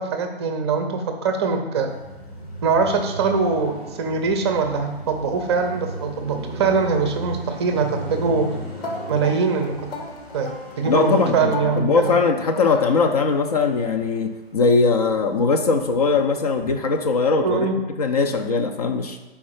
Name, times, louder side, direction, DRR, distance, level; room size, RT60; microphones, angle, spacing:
voice 1, 0.0-1.9 2.6-8.5 9.1-9.8 10.3-10.5 10.8-12.1 17.4-17.7, right 5 dB, 25° right, 5 dB, 0.5 m, -22 dB
Car passing by, 1.9-14.3 14.7-17.2, right 1 dB, 85° left, 1.7 m, -36 dB
sound 1, 8.8-13.4, left 3 dB, 60° left, 1.0 m, -36 dB
voice 2, 10.8-17.7 18.0-19.2, left 4 dB, 40° left, 6 dB, 0.5 m, -20 dB
4.6 x 4.3 x 5.6 m, 1.2 s
figure-of-eight pair, 125°, 31 cm